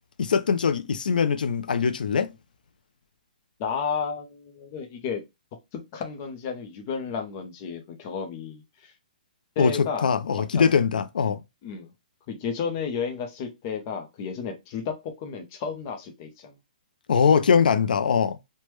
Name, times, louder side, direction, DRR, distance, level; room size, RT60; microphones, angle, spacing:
voice 1, 0.2-2.3 9.6-11.4 17.1-18.4, left 6 dB, 75° left, 0.4 m, -22 dB
voice 2, 3.6-5.2 5.9-8.9 9.6-10.7 11.6-11.9 12.3-16.5, left 6 dB, 20° left, 0.5 m, -32 dB
3.2 x 2.1 x 3.0 m
hypercardioid pair, 180°, 5 cm